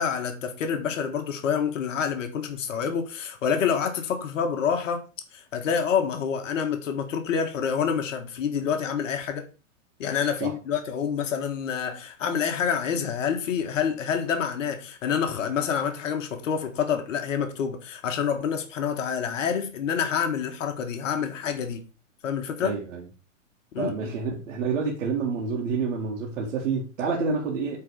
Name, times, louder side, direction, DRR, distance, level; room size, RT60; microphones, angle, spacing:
voice 1, 0.0-5.0 5.3-9.5 10.0-21.8 22.2-22.8 23.7-24.1, left 7 dB, 65° left, 1.7 m, -27 dB
voice 2, 22.6-23.0 23.8-27.8, right 5 dB, 70° right, 2.1 m, -28 dB
8.7 x 4.0 x 4.8 m
hypercardioid pair, 140°, 40 cm